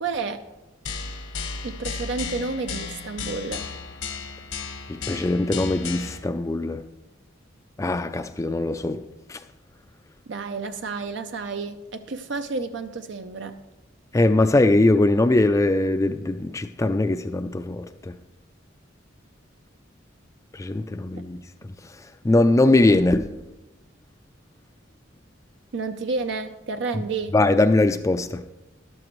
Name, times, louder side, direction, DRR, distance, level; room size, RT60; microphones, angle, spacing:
voice 1, 0.0-0.4 1.6-3.7 10.3-13.6 25.7-27.4, right 4 dB, 65° right, 0.5 m, -30 dB
sound 1, 0.9-6.2, left 5 dB, 80° left, 1.2 m, -34 dB
voice 2, 5.1-6.8 7.8-9.0 9.3-9.4 14.1-17.9 20.6-21.4 22.2-23.3 27.3-28.4, left 2 dB, 15° left, 0.3 m, -21 dB
12.5 x 12.0 x 3.1 m
head